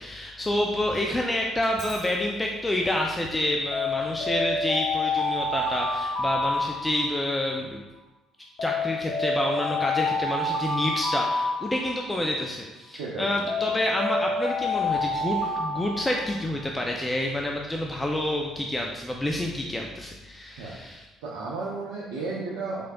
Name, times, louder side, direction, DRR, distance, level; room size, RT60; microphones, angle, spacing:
voice 1, 0.0-7.8 8.6-21.0, left 1 dB, 15° left, 1 dB, 0.4 m, -28 dB
Alarm, 1.6-2.0 3.7-7.5 8.6-12.4 13.5-16.7, left 2 dB, 65° left, 0.8 m, -28 dB
voice 2, 12.9-13.3 13.6-13.7 20.6-20.8 21.2-22.8, right 3 dB, 75° right, -5 dB, 0.5 m, -33 dB
3.7 x 3.3 x 2.2 m, 1.1 s
hypercardioid pair, 55°, 0 cm